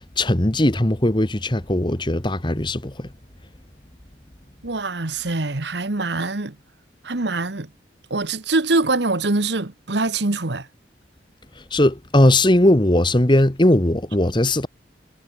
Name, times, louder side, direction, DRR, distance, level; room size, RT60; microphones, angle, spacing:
voice 1, 0.2-3.1 11.7-14.7, left 1 dB, 25° left, 1.5 m, -18 dB
voice 2, 4.6-6.5 7.0-7.7 8.1-10.7, right 3 dB, 70° right, 1.4 m, -23 dB
head